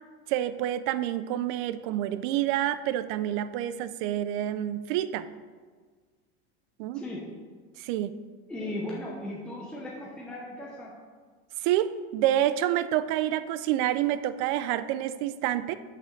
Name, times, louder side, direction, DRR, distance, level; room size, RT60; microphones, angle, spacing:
voice 1, 0.3-5.3 6.8-7.0 7.8-8.1 11.6-15.7, right 12 dB, 50° right, 13 dB, 0.4 m, -28 dB
voice 2, 8.5-10.9, left 1 dB, 5° left, -4 dB, 0.6 m, -37 dB
6.1 x 5.8 x 6.5 m, 1.5 s
cardioid pair, 170°, 33 cm